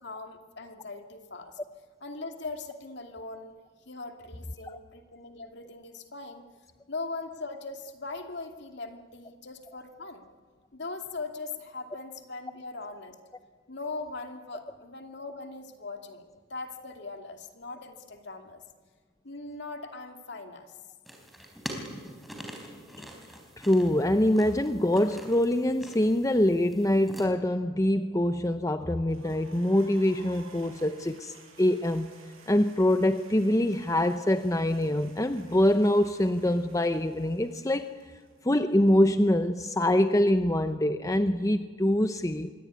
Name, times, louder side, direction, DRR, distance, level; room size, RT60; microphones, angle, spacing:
voice 1, 0.0-1.6 2.0-3.6 3.9-6.4 6.9-10.2 10.7-13.1 13.7-18.6 19.2-20.8, left 3 dB, 55° left, 5 dB, 2.6 m, -40 dB
sound 1, 21.0-27.3, equal, ahead, 4.2 m, -44 dB
voice 2, 23.6-32.1 32.5-37.9 38.4-42.5, left 1 dB, 15° left, 9 dB, 0.7 m, -24 dB
sound 2, 29.1-38.9, right 3 dB, 90° right, 7.4 m, -55 dB
26.0 x 23.0 x 9.7 m, 1.5 s
head